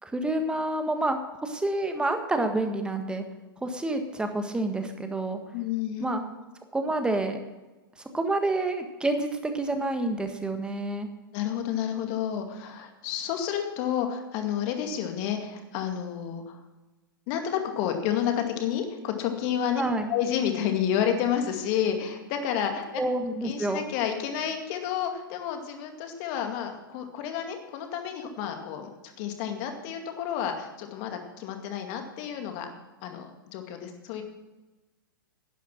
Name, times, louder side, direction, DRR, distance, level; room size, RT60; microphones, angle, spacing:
voice 1, 0.0-3.2 3.6-5.4 6.0-6.2 6.7-7.4 8.1-11.1 19.8-20.1 23.0-23.8, right 2 dB, 10° right, 6 dB, 1.5 m, -28 dB
voice 2, 5.5-6.1 11.3-16.6 17.3-19.8 20.1-23.0 23.4-32.7 33.0-34.2, left 9 dB, 45° left, 5 dB, 2.2 m, -30 dB
11.5 x 10.0 x 6.1 m, 1.1 s
figure-of-eight pair, 105°, 12 cm